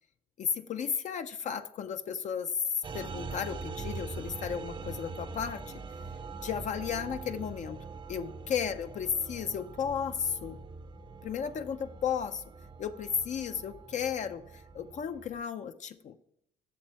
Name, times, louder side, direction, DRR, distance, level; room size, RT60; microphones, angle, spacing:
voice 1, 0.4-5.6 6.4-7.8 8.1-10.6 11.2-12.4 12.8-16.2, left 7 dB, 45° left, 8 dB, 0.5 m, -34 dB
sound 1, 2.8-15.4, right 4 dB, 30° right, 0.6 m, -43 dB
8.5 x 6.6 x 4.6 m, 0.77 s
cardioid pair, 110°, 17 cm